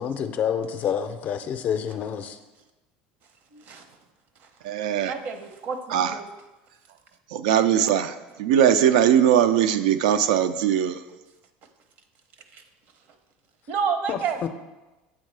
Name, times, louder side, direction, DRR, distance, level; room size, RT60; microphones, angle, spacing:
voice 1, 0.0-2.4 14.1-14.5, left 8 dB, 45° left, 9 dB, 0.4 m, -28 dB
voice 2, 3.5-3.9 5.0-6.3 12.5-12.6 13.7-14.4, right 6 dB, 55° right, 8 dB, 0.7 m, -29 dB
voice 3, 4.6-5.1 5.9-6.1 7.3-11.0, right 9 dB, 85° right, 10 dB, 0.3 m, -20 dB
8.2 x 3.6 x 3.3 m, 1.1 s
supercardioid pair, 110°, 4 cm